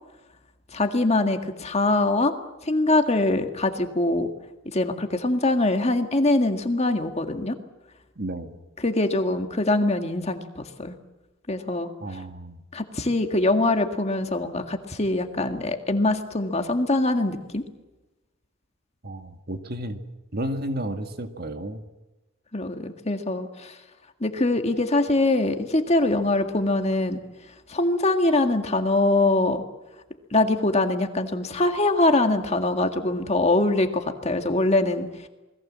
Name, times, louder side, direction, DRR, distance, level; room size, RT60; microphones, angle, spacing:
voice 1, 0.7-2.3 2.6-4.3 4.7-7.6 8.8-11.0 11.5-12.2 12.7-17.6 22.5-23.8 24.2-27.2 27.7-29.6 30.3-35.3, left 2 dB, 30° left, 6 dB, 1.9 m, -23 dB
voice 2, 8.2-8.5 12.0-12.6 19.0-20.0 20.3-21.8, right 1 dB, 50° right, 7 dB, 2.0 m, -32 dB
28.0 x 21.0 x 7.6 m, 1.1 s
head